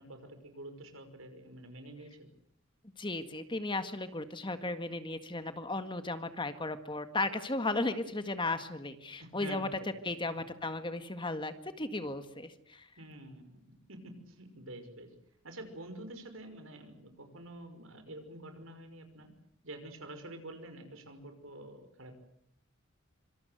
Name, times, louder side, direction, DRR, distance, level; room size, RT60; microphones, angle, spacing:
voice 1, 0.0-2.3 9.2-10.1 13.0-13.6 13.9-15.1 15.4-19.3 19.6-22.2, right 1 dB, 75° right, 8 dB, 5.8 m, -48 dB
voice 2, 3.0-9.7 10.0-12.9, left 2 dB, 25° left, 9 dB, 1.8 m, -35 dB
26.0 x 26.0 x 8.0 m, 0.68 s
head